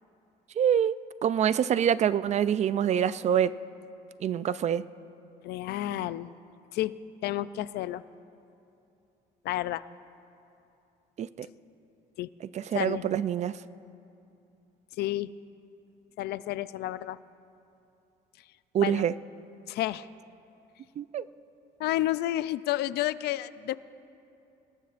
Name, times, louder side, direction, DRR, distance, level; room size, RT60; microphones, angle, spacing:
voice 1, 0.6-1.0 1.2-3.5 4.2-4.8 11.2-11.5 12.5-13.6 18.7-19.1 21.0-21.2, right 9 dB, 40° right, 16 dB, 0.4 m, -25 dB
voice 2, 5.4-6.3 6.7-8.0 9.4-9.8 12.2-12.3 12.7-13.0 15.0-15.3 16.2-17.2 18.8-19.1 19.7-20.1 21.8-23.8, left 14 dB, 75° left, 16 dB, 0.4 m, -31 dB
26.5 x 19.5 x 2.5 m, 2.7 s
cardioid pair, 110°, 17 cm